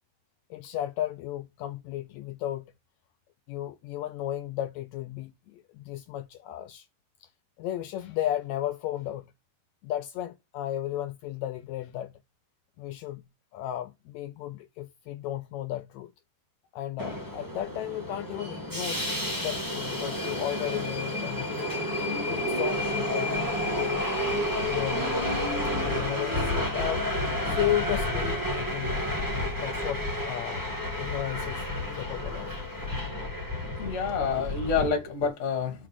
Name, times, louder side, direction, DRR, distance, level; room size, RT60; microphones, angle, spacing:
voice 1, 0.5-2.7 3.5-6.9 7.2-7.3 7.6-9.3 9.8-12.2 12.8-16.1 16.7-21.7 22.2-24.1 24.6-25.4 25.8-27.1 27.5-29.2 29.6-30.6 31.0-31.7 31.9-32.6 34.1-34.3, left 12 dB, 80° left, 1.7 m, -34 dB
Subway metro underground, 17.0-34.9, left 1 dB, 15° right, 0.7 m, -30 dB
voice 2, 33.6-35.9, left 5 dB, 40° left, 1.2 m, -28 dB
5.1 x 4.8 x 5.9 m
omnidirectional pair, 3.5 m